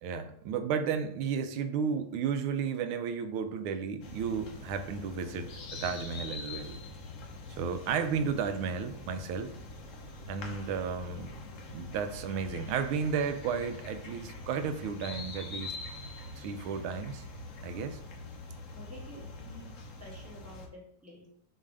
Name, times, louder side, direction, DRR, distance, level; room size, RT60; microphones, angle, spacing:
voice 1, 0.0-6.8 7.6-9.5 10.3-11.3 11.7-15.8 16.4-17.2 17.6-18.0, right 6 dB, 85° right, 10 dB, 1.5 m, -33 dB
sound 1, 4.0-20.7, left 2 dB, 55° left, 0.9 m, -44 dB
voice 2, 18.7-21.3, equal, 10° right, -3 dB, 1.7 m, -50 dB
6.4 x 3.2 x 5.0 m, 0.68 s
omnidirectional pair, 2.3 m